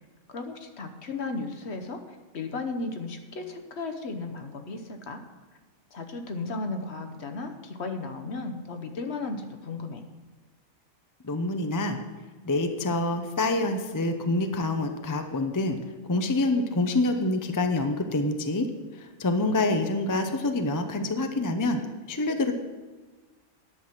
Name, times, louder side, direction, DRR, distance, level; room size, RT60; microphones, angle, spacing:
voice 1, 0.3-2.0 2.3-5.2 5.9-10.0, left 3 dB, 55° left, 5 dB, 1.2 m, -35 dB
voice 2, 11.2-12.0 12.4-15.8 16.1-18.7 18.9-21.8 22.1-22.5, left 2 dB, 20° left, 6 dB, 0.5 m, -26 dB
11.0 x 6.1 x 7.4 m, 1.4 s
omnidirectional pair, 1.4 m